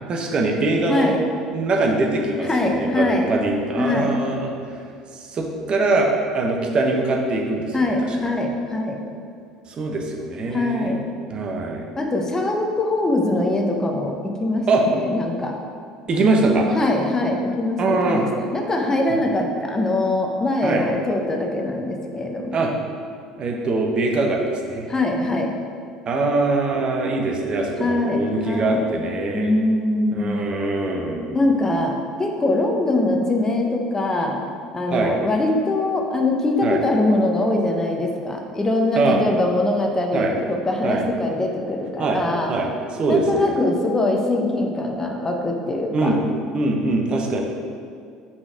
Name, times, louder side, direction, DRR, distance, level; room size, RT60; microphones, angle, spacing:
voice 1, 0.1-1.2 1.5-4.5 5.1-8.2 9.7-11.0 11.3-11.9 14.7-14.8 16.1-16.7 17.8-18.2 20.6-20.9 22.5-22.7 23.4-24.9 26.1-29.6 30.1-31.5 34.9-35.1 36.6-36.8 38.9-39.2 40.1-40.3 40.8-41.0 42.0-42.2 42.5-43.5 45.9-46.2 46.5-47.4, right 2 dB, 40° right, 1 dB, 1.0 m, -22 dB
voice 2, 2.4-3.3 3.8-4.1 7.7-9.0 10.5-11.1 11.9-15.6 16.7-22.7 24.9-25.5 27.8-28.8 29.3-30.4 31.3-34.4 34.7-42.6 43.1-46.2, left 2 dB, 20° left, 2 dB, 0.9 m, -22 dB
6.1 x 4.0 x 5.0 m, 2.3 s
hypercardioid pair, 65°, 2 cm